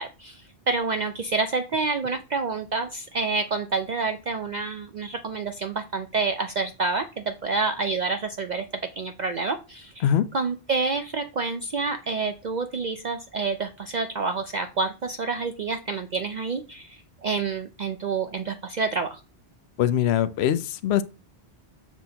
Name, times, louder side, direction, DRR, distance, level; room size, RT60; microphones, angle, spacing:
voice 1, 0.0-8.6 9.0-10.0 10.3-19.2, right 4 dB, 50° right, 0.6 m, -28 dB
voice 2, 19.8-21.0, left 10 dB, 75° left, 0.8 m, -22 dB
7.0 x 6.1 x 2.8 m
omnidirectional pair, 1.1 m